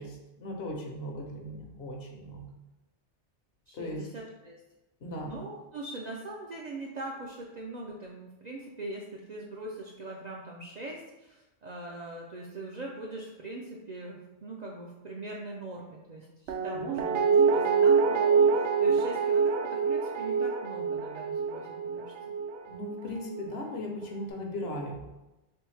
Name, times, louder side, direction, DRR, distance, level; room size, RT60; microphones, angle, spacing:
voice 1, 0.0-2.4 3.7-4.0 5.0-5.4 16.7-17.0 22.7-25.1, left 1 dB, 65° left, 1 dB, 0.9 m, -38 dB
voice 2, 3.7-4.6 5.0-17.2 17.5-21.7 21.9-22.1, right 2 dB, 60° right, -2 dB, 0.4 m, -41 dB
Guitar, 16.5-23.5 23.8-23.9, right 5 dB, 75° right, 0.8 m, -26 dB
3.4 x 3.3 x 3.1 m, 0.99 s
omnidirectional pair, 1.2 m